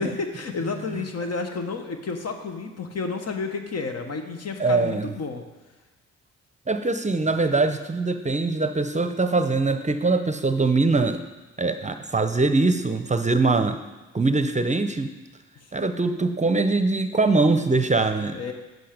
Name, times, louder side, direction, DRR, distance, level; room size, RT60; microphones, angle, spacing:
voice 1, 0.0-5.4 18.3-18.5, left 4 dB, 50° left, 5 dB, 1.2 m, -31 dB
voice 2, 4.6-5.1 6.7-11.2 11.6-13.8 14.1-15.1 15.7-18.4, right 3 dB, 20° right, 9 dB, 0.7 m, -22 dB
7.8 x 7.8 x 5.1 m, 1.2 s
supercardioid pair, 50°, 32 cm